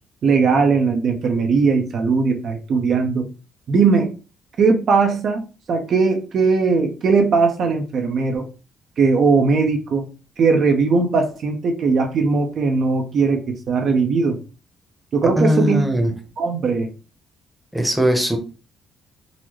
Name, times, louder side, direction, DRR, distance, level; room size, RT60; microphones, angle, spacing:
voice 1, 0.2-3.3 3.7-4.1 4.6-5.4 5.7-8.5 9.0-10.0 10.4-14.4 15.1-15.8 16.4-16.9, right 4 dB, 55° right, 4 dB, 0.6 m, -19 dB
voice 2, 15.4-16.1 17.7-18.4, equal, ahead, 3 dB, 0.9 m, -19 dB
3.8 x 2.0 x 3.1 m, 0.33 s
cardioid pair, 95°, 0 cm